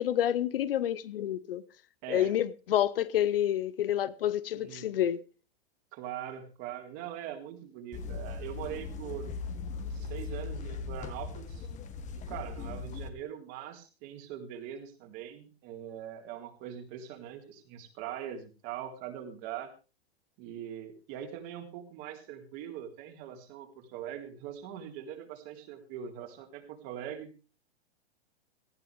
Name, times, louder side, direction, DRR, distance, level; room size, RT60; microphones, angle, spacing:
voice 1, 0.0-1.6 2.1-5.2, left 11 dB, 65° left, 1.0 m, -28 dB
voice 2, 2.0-2.3 4.5-5.0 5.9-9.3 9.9-11.7 12.3-19.7 20.4-27.3, right 10 dB, 45° right, 3.8 m, -42 dB
sound 1, 7.9-13.1, left 4 dB, 25° left, 1.7 m, -39 dB
18.0 x 15.0 x 3.5 m
hypercardioid pair, 110°, 31 cm